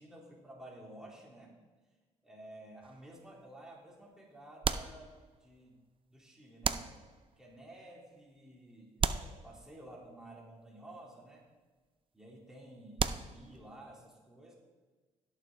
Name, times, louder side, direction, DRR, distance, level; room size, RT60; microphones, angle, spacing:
voice 1, 0.0-1.5 2.2-5.1 5.4-5.8 6.1-6.9 7.4-11.4 12.1-14.5, right 1 dB, 5° right, -4 dB, 3.0 m, -52 dB
sound 1, 2.8-3.4 4.6-5.6 6.6-7.5 9.0-10.1 13.0-13.8, right 6 dB, 40° right, 0.5 m, -36 dB
16.5 x 6.6 x 3.7 m, 1.3 s
supercardioid pair, 70°, 14 cm